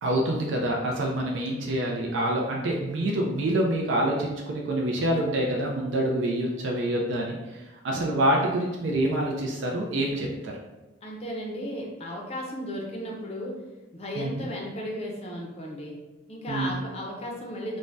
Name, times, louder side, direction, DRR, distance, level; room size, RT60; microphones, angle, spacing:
voice 1, 0.0-10.5 14.2-14.5 16.5-16.8, right 1 dB, 70° right, -1 dB, 0.4 m, -26 dB
voice 2, 11.0-13.6 13.9-16.0 16.3-17.8, equal, 30° left, -1 dB, 0.5 m, -35 dB
2.6 x 2.1 x 3.2 m, 1.1 s
head